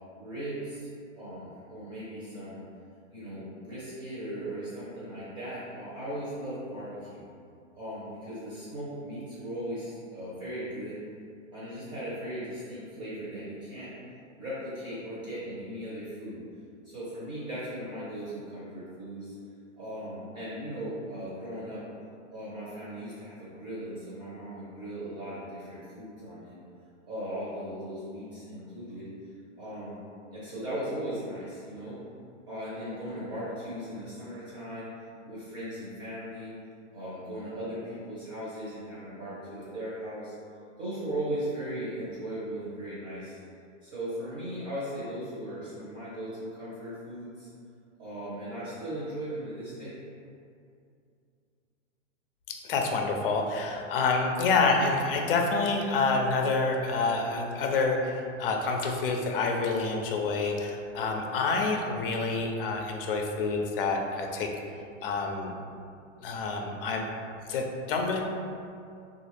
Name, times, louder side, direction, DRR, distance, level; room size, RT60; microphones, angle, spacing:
voice 1, 0.2-0.9 1.2-2.6 3.1-7.3 7.8-11.0 11.5-13.9 14.4-16.4 16.8-19.4 19.8-21.8 22.3-26.6 27.1-29.1 29.6-30.0 30.3-32.0 32.5-34.9 35.2-36.5 36.9-40.3 40.8-43.4 43.8-47.5 48.0-50.0, right 1 dB, 25° right, -10 dB, 0.8 m, -38 dB
voice 2, 52.6-64.5 65.0-65.5 66.2-67.1 67.5-68.2, left 3 dB, 45° left, 2 dB, 0.5 m, -27 dB
3.2 x 2.5 x 3.1 m, 2.4 s
hypercardioid pair, 145°, 38 cm